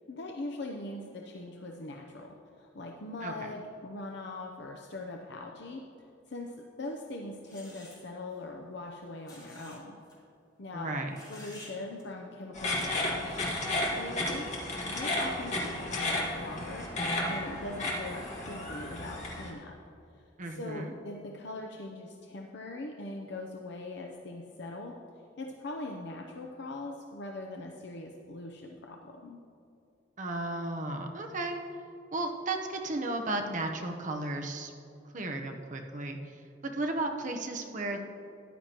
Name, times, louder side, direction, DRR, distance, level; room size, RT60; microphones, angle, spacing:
voice 1, 0.1-5.9 6.3-10.0 10.6-10.9 11.3-13.4 13.7-14.5 14.8-19.8 20.2-25.0 25.4-29.4, left 2 dB, 65° left, 1 dB, 0.7 m, -41 dB
sound 1, 6.8-7.0 7.5-8.0 9.2-9.8 10.0-10.1 11.1-11.7 12.0-12.1, left 1 dB, 20° left, 2.7 m, -51 dB
voice 2, 10.7-11.2 20.4-20.9 30.2-31.6 32.1-34.7 35.1-36.2 36.6-38.0, right 2 dB, 40° right, 3 dB, 0.9 m, -34 dB
sound 2, 12.5-19.5, left 1 dB, 40° left, 1.8 m, -33 dB
13.5 x 10.5 x 2.9 m, 2.6 s
head